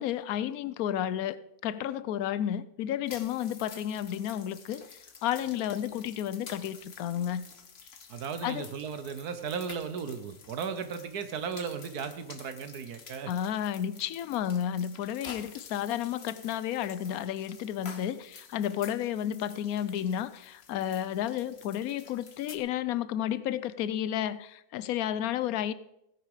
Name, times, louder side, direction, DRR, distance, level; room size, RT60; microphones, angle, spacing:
voice 1, 0.0-4.8 5.2-7.5 8.4-8.7 13.3-25.7, left 10 dB, 75° left, 1.1 m, -32 dB
sound 1, 3.1-22.6, left 6 dB, 45° left, 1.2 m, -50 dB
voice 2, 8.1-13.3, right 6 dB, 80° right, 1.5 m, -36 dB
16.5 x 10.0 x 4.9 m
omnidirectional pair, 1.6 m